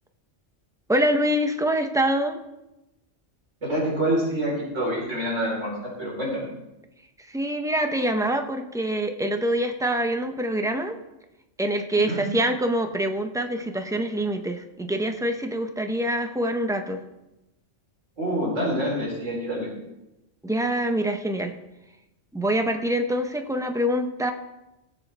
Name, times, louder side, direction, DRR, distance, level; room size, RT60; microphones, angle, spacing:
voice 1, 0.9-2.4 7.3-11.0 11.6-17.0 20.4-21.5 22.3-24.3, right 1 dB, 5° right, 6 dB, 0.5 m, -25 dB
voice 2, 3.6-6.5 12.1-12.2 18.2-19.7, equal, 80° right, -4 dB, 4.2 m, -26 dB
17.0 x 7.7 x 3.3 m, 0.95 s
omnidirectional pair, 1.3 m